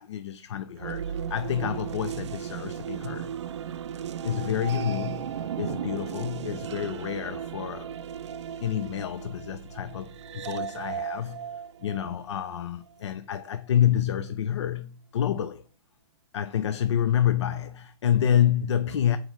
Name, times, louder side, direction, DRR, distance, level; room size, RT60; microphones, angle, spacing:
voice 1, 0.0-3.3 4.2-7.9 8.6-11.5 11.8-15.6 16.3-19.2, left 10 dB, 80° left, 0.5 m, -28 dB
sound 1, 0.8-12.6, right 8 dB, 85° right, 0.5 m, -36 dB
6.4 x 4.3 x 4.6 m
hypercardioid pair, 160°, 15 cm